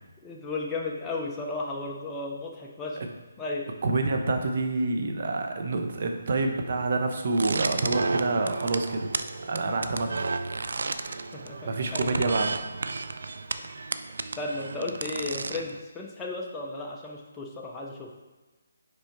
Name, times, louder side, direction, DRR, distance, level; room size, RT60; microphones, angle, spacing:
voice 1, 0.2-3.0 3.4-3.7 11.3-12.3 14.4-18.1, left 3 dB, 10° left, -2 dB, 0.7 m, -34 dB
voice 2, 3.8-9.1 9.5-10.3 11.7-12.5, right 3 dB, 50° right, 4 dB, 0.9 m, -27 dB
sound 1, 7.3-15.8, right 3 dB, 70° right, 0.4 m, -33 dB
5.5 x 4.8 x 4.5 m, 1.2 s
hypercardioid pair, 165°, 0 cm